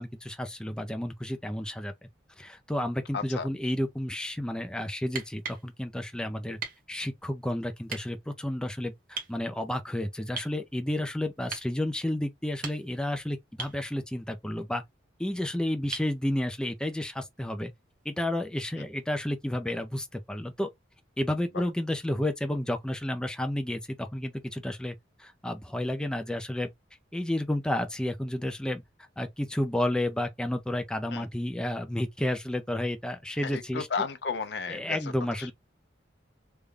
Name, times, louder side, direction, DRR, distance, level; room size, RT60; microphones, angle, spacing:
voice 1, 0.0-1.9 2.4-6.6 6.9-14.8 15.2-17.7 18.0-20.7 21.2-26.7 27.1-33.9 34.7-35.5, left 1 dB, 5° left, 0.4 m, -31 dB
voice 2, 3.1-3.5 21.5-21.6 31.1-31.3 33.4-35.1 35.4-35.5, left 5 dB, 65° left, 0.5 m, -33 dB
sound 1, 5.0-5.7 6.6-6.8 7.9-8.0 9.2-9.4 10.4-10.6 11.5-11.7 12.4-13.1 13.6-13.8 15.9-16.2 18.0-18.1, right 5 dB, 50° right, 1.0 m, -38 dB
3.3 x 2.2 x 3.5 m
head